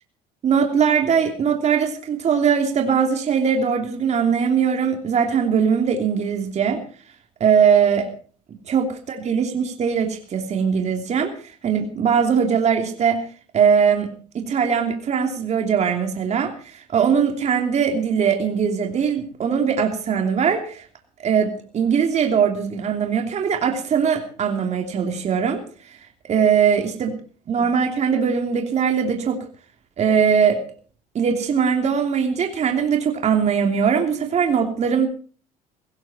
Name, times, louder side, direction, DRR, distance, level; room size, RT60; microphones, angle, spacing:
voice 1, 0.4-6.8 7.4-8.1 8.7-13.2 13.5-14.1 14.3-20.9 21.2-25.6 25.9-26.0 26.3-27.1 27.5-29.4 30.0-30.6 31.1-35.1, right 7 dB, 40° right, 4 dB, 2.9 m, -20 dB
17.5 x 16.0 x 4.3 m, 0.41 s
supercardioid pair, 95°, 17 cm